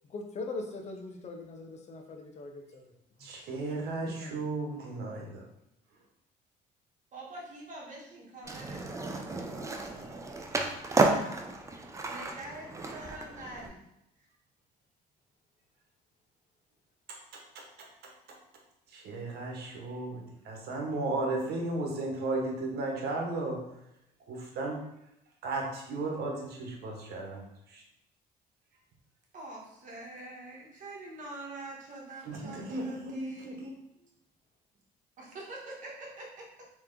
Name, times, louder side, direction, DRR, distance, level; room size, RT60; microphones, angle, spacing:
voice 1, 0.1-2.9 3.4-4.5, left 3 dB, 40° left, 3 dB, 0.6 m, -42 dB
voice 2, 3.2-5.5 18.9-23.6 24.3-24.8 25.4-27.4 27.7-27.8 32.3-33.7, right 2 dB, 70° right, 0 dB, 1.1 m, -35 dB
voice 3, 7.1-9.5 12.0-13.8 14.2-14.3 29.3-33.6 35.2-36.5, right 2 dB, 50° right, -2 dB, 1.3 m, -45 dB
Skateboard, 8.4-13.7, right 3 dB, 20° right, 0.5 m, -32 dB
3.4 x 3.0 x 3.7 m, 0.83 s
cardioid pair, 110°, 17 cm